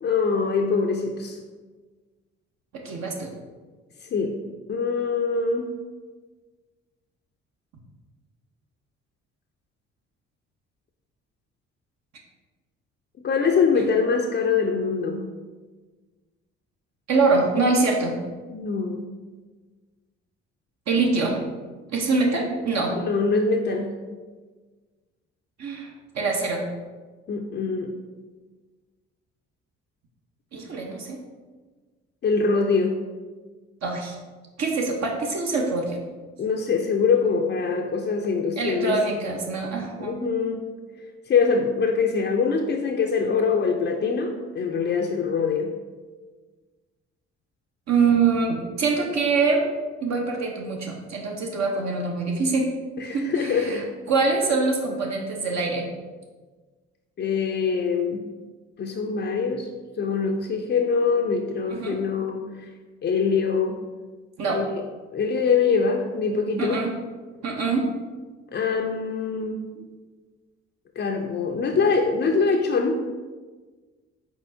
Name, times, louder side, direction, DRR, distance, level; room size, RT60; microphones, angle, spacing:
voice 1, 0.0-1.4 4.0-4.4 4.7-5.7 13.2-15.3 18.5-19.1 22.9-23.9 27.3-27.9 32.2-33.0 36.4-39.0 40.0-40.7 41.3-45.7 53.0-53.9 57.2-58.2 58.8-59.7 60.0-62.5 63.0-63.8 64.5-64.8 65.1-66.8 68.5-69.6 71.0-73.0, left 5 dB, 35° left, 2 dB, 0.4 m, -23 dB
voice 2, 2.8-3.3 17.1-18.2 20.9-21.4 21.9-22.9 25.6-25.9 26.1-26.6 30.5-31.2 33.8-34.1 34.6-36.0 38.6-40.2 47.9-49.7 50.0-52.6 53.0-53.8 54.1-55.9 61.7-62.0 64.4-64.6 66.6-66.9 67.4-67.9, right 4 dB, 55° right, 0 dB, 0.7 m, -24 dB
4.4 x 4.0 x 2.6 m, 1.4 s
hypercardioid pair, 50°, 32 cm